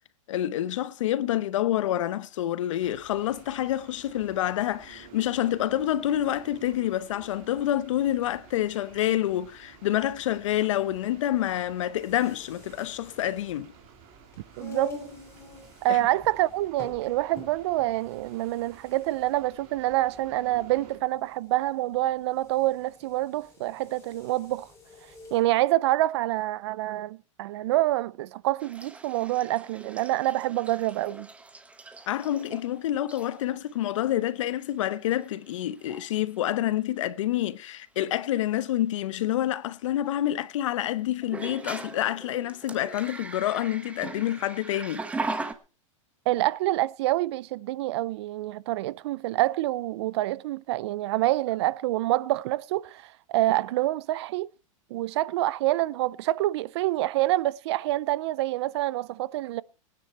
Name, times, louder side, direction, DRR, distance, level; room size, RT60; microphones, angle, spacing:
voice 1, 0.3-13.7 15.9-16.0 32.1-45.1, left 13 dB, 70° left, 0.9 m, -28 dB
sound 1, 2.8-21.0, right 6 dB, 35° right, 4.2 m, -52 dB
sound 2, 11.9-25.5, left 4 dB, 15° left, 7.0 m, -48 dB
voice 2, 14.6-14.9 15.8-24.7 25.3-31.3 46.3-53.0 53.3-54.5 54.9-59.6, right 16 dB, 55° right, 0.6 m, -27 dB
sound 3, 28.6-32.7 33.1-33.5 34.5-34.6 35.1-35.5 35.8-36.1 38.1-38.2 41.2-45.5, right 3 dB, 5° right, 1.0 m, -39 dB
20.0 x 9.7 x 4.4 m
supercardioid pair, 145°, 17 cm